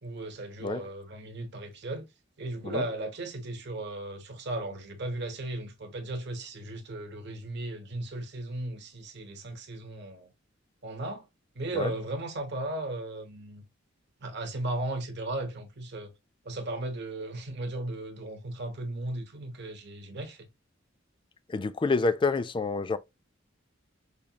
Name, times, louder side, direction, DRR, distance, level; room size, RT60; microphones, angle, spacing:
voice 1, 0.0-2.1 2.4-10.3 10.8-11.2 11.5-13.6 14.2-16.1 16.4-20.5, right 2 dB, 60° right, 0.9 m, -36 dB
voice 2, 21.5-23.0, left 3 dB, 25° left, 0.3 m, -28 dB
5.1 x 2.3 x 2.8 m
head